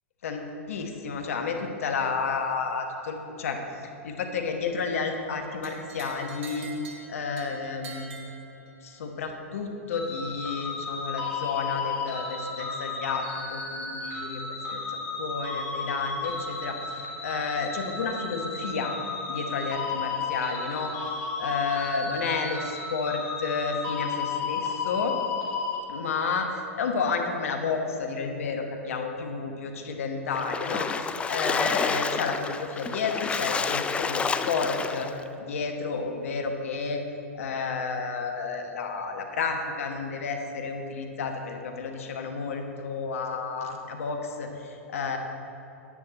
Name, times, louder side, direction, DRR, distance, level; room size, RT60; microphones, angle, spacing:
voice 1, 0.2-3.6 4.0-6.7 7.1-8.1 8.8-14.4 14.7-18.9 19.3-20.9 21.4-25.1 25.9-35.1 35.4-37.0 37.3-45.2, left 5 dB, 70° left, 4 dB, 1.3 m, -31 dB
sound 1, 5.6-9.0, right 4 dB, 55° right, 2.3 m, -44 dB
sound 2, 9.9-25.8, left 4 dB, 40° left, 2.3 m, -33 dB
Splash splatter, 30.3-35.2, left 5 dB, 15° left, 0.4 m, -29 dB
9.7 x 9.4 x 4.3 m, 2.7 s
hypercardioid pair, 105°, 8 cm